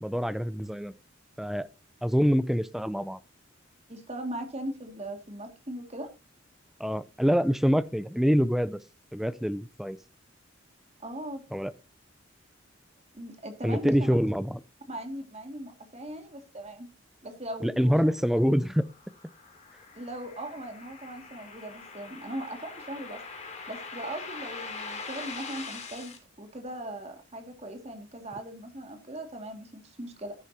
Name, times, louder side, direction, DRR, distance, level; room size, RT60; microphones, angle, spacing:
voice 1, 0.0-0.9 1.4-1.7 2.0-3.2 6.8-8.8 9.1-10.0 11.5-11.7 13.6-14.6 17.6-18.8, equal, ahead, 0.5 m, -25 dB
voice 2, 3.9-6.1 11.0-11.4 13.1-14.1 14.9-16.9 17.2-17.9 19.9-23.2 23.7-30.3, right 1 dB, 30° right, 2.2 m, -39 dB
sound 1, 18.4-26.2, left 4 dB, 35° left, 2.6 m, -42 dB
11.5 x 11.5 x 2.8 m
head